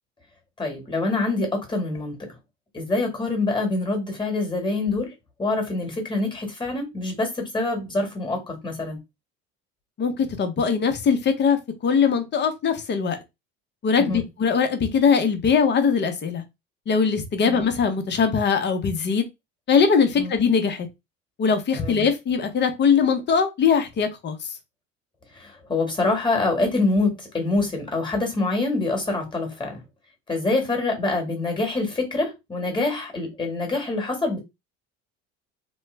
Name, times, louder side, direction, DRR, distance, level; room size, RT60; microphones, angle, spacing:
voice 1, 0.6-2.3 2.7-5.1 5.4-9.0 14.0-14.2 17.4-17.6 20.1-20.3 21.7-22.0 25.3-29.8 30.3-34.4, left 2 dB, 15° left, 1.5 m, -25 dB
voice 2, 10.0-13.2 13.8-16.4 16.9-19.2 19.7-20.9 21.4-24.4, left 6 dB, 35° left, 0.8 m, -21 dB
3.1 x 2.2 x 3.2 m
supercardioid pair, 105°, 31 cm